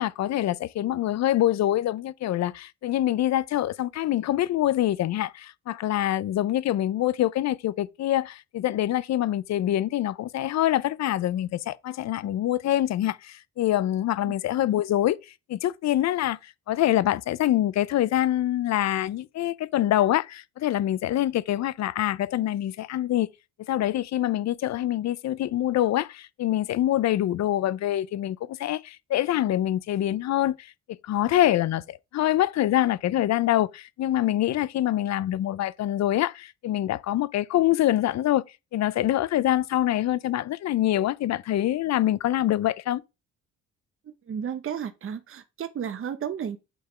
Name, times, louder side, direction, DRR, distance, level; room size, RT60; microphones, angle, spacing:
voice 1, 0.0-15.2 15.5-23.3 23.7-38.4 38.7-43.0, left 13 dB, 60° left, 0.6 m, -25 dB
voice 2, 44.1-46.6, right 8 dB, 45° right, 0.8 m, -33 dB
8.4 x 3.4 x 4.9 m
cardioid pair, 90°, 30 cm